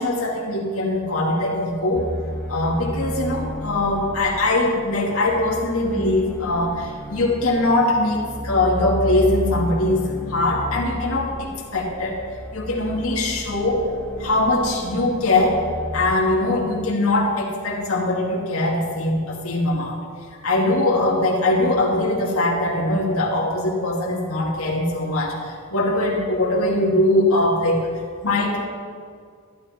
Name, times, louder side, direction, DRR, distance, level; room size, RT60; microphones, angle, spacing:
voice 1, 0.0-2.1 2.5-12.2 12.5-13.9 14.2-15.6 15.9-20.0 20.4-27.9 28.2-28.6, left 2 dB, 80° left, -3 dB, 2.0 m, -21 dB
sound 1, 1.9-16.2, equal, 5° left, 1.3 m, -33 dB
13.0 x 12.0 x 4.2 m, 2.1 s
head